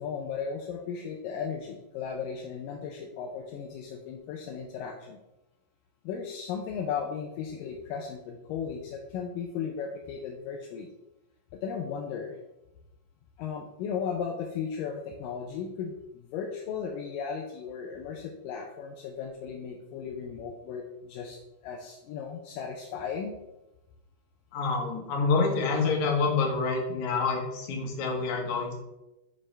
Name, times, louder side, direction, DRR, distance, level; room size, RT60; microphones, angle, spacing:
voice 1, 0.0-5.2 6.0-10.9 11.5-12.4 13.4-23.3, left 6 dB, 80° left, 1 dB, 2.3 m, -36 dB
voice 2, 24.5-28.7, left 4 dB, 60° left, 1 dB, 2.5 m, -27 dB
7.5 x 6.4 x 3.3 m, 0.95 s
omnidirectional pair, 4.0 m